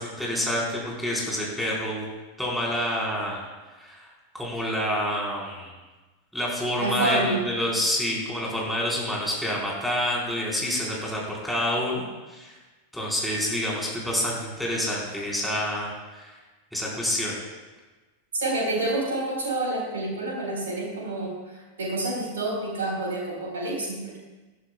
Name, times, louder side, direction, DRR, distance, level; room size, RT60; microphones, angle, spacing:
voice 1, 0.0-2.0 2.4-3.4 3.8-4.1 4.3-5.7 6.3-12.5 12.9-16.3 16.7-17.3, left 1 dB, ahead, -5 dB, 4.4 m, -28 dB
voice 2, 6.8-7.5 18.3-24.2, right 2 dB, 65° right, -1 dB, 4.1 m, -28 dB
19.0 x 12.0 x 2.3 m, 1.2 s
figure-of-eight pair, 90°, 0 cm